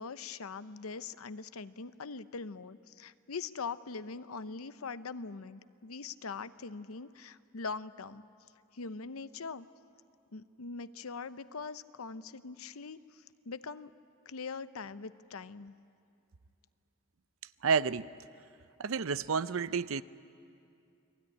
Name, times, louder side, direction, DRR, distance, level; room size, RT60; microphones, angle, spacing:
voice 1, 0.0-8.2 8.7-9.7 10.3-13.9 14.3-15.7, left 4 dB, 90° left, 13 dB, 0.8 m, -42 dB
voice 2, 17.6-18.1 18.8-20.0, right 5 dB, 75° right, 15 dB, 0.6 m, -30 dB
29.5 x 20.5 x 9.8 m, 2.5 s
head